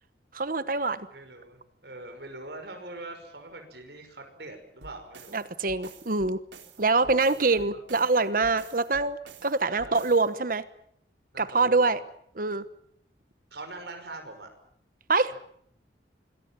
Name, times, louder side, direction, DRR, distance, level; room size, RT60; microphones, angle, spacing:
voice 1, 0.3-1.1 5.3-6.4 6.8-10.6 11.4-12.0 12.4-12.6 15.1-15.3, right 3 dB, 50° right, 14 dB, 1.1 m, -25 dB
voice 2, 1.1-5.3 7.3-7.7 9.7-10.1 11.3-12.0 13.5-14.5 15.3-15.4, right 2 dB, 65° right, 5 dB, 5.8 m, -43 dB
sound 1, 4.8-10.3, right 3 dB, 80° right, 4.1 m, -49 dB
26.5 x 22.0 x 7.4 m, 0.67 s
head